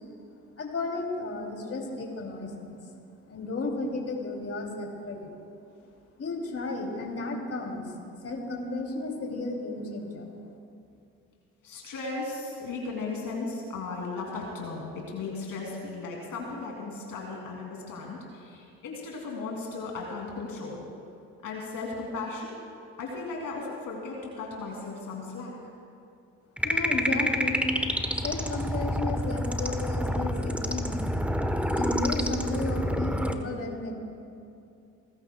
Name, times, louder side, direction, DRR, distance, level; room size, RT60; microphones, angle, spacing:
voice 1, 0.6-2.8 3.3-5.3 6.2-10.3 26.6-27.6 28.2-31.0 31.7-33.9, left 2 dB, 35° left, 0 dB, 2.8 m, -33 dB
voice 2, 11.6-20.8 21.4-22.6 23.0-25.5, left 3 dB, 55° left, -1 dB, 2.8 m, -36 dB
sound 1, 26.6-33.3, equal, 5° right, 1.0 m, -28 dB
28.0 x 14.5 x 2.2 m, 2.6 s
hypercardioid pair, 55°, 38 cm